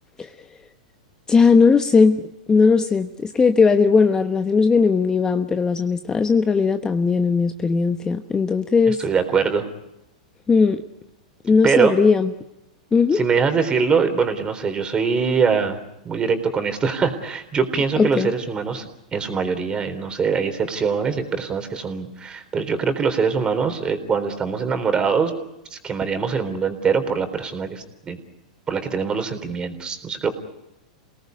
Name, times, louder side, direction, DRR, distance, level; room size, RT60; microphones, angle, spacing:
voice 1, 1.3-9.0 10.5-10.8 11.4-12.3 12.9-13.2 18.0-18.3, left 5 dB, 15° left, 8 dB, 1.1 m, -18 dB
voice 2, 8.9-9.7 11.6-11.9 13.1-15.8 16.0-25.3 25.7-28.2 28.7-30.3, right 5 dB, 20° right, 8 dB, 3.8 m, -23 dB
28.0 x 18.5 x 9.4 m, 0.92 s
hypercardioid pair, 115°, 4 cm